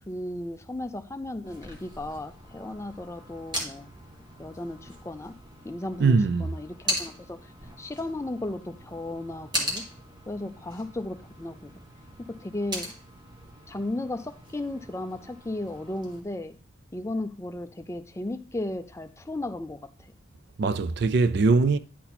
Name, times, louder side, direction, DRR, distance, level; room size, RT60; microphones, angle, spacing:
voice 1, 0.1-3.9 4.4-5.4 5.6-7.5 7.8-9.8 10.3-11.7 12.3-12.9 13.7-16.6 16.9-19.8, left 1 dB, 15° left, 0.4 m, -35 dB
sound 1, 1.4-16.2, equal, 20° right, 1.6 m, -39 dB
voice 2, 6.0-6.5 20.6-21.8, right 4 dB, 50° right, 0.4 m, -21 dB
10.0 x 4.2 x 4.2 m
head